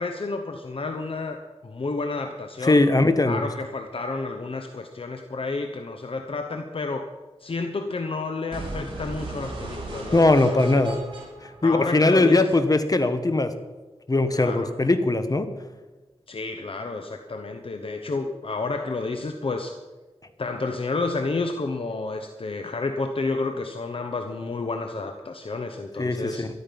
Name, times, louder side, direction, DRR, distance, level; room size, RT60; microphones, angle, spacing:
voice 1, 0.0-1.4 1.6-2.8 3.2-7.0 7.4-10.5 11.6-12.5 14.3-14.7 16.3-19.7 20.4-26.5, left 3 dB, 60° left, 5 dB, 1.0 m, -30 dB
voice 2, 2.6-3.4 10.1-11.0 11.6-13.5 14.1-15.5 26.0-26.5, left 2 dB, 35° left, 9 dB, 1.3 m, -20 dB
sound 1, 8.5-12.5, right 1 dB, 50° right, 5.6 m, -36 dB
13.5 x 12.5 x 5.3 m, 1.2 s
wide cardioid pair, 70°, 11 cm